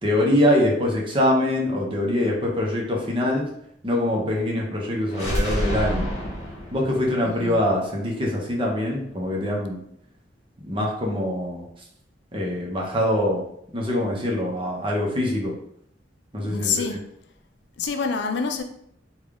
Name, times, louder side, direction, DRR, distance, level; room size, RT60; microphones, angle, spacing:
voice 1, 0.0-3.5 3.8-6.1 6.7-9.8 10.6-11.7 12.3-13.4 13.7-15.5 16.3-17.0, left 1 dB, 30° right, -1 dB, 0.8 m, -24 dB
sound 1, 5.1-8.9, equal, 40° left, 1.1 m, -29 dB
voice 2, 7.2-7.6 16.4-17.0 17.8-18.6, left 5 dB, 70° left, 5 dB, 0.4 m, -26 dB
3.5 x 2.3 x 3.5 m, 0.71 s
head